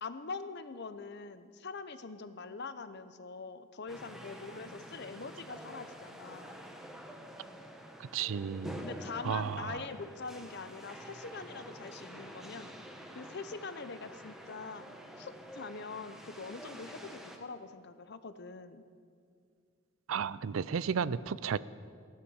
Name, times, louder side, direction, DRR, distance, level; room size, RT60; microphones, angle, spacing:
voice 1, 0.0-6.6 8.8-12.7 13.1-14.8 15.2-18.8, left 4 dB, 55° left, 11 dB, 0.8 m, -43 dB
sound 1, 3.9-17.4, equal, ahead, 1.1 m, -48 dB
voice 2, 8.0-8.8 9.2-9.8 20.1-21.6, right 7 dB, 75° right, 18 dB, 0.4 m, -33 dB
16.0 x 11.5 x 7.1 m, 2.2 s
head